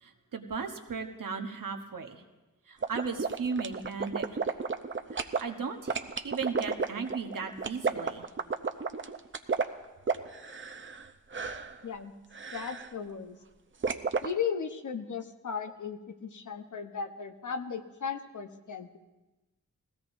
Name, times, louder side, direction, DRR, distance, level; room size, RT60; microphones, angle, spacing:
voice 1, 0.0-2.2 2.7-4.3 5.1-8.3, right 5 dB, 85° right, 4 dB, 1.1 m, -36 dB
sound 1, 2.8-5.4 5.9-11.1 11.3-11.7 12.3-12.9 13.8-14.3, right 5 dB, 40° right, 0.7 m, -32 dB
voice 2, 12.5-13.4 14.2-19.0, left 6 dB, 70° left, 6 dB, 0.9 m, -36 dB
20.0 x 16.5 x 2.6 m, 1.1 s
wide cardioid pair, 75°, 32 cm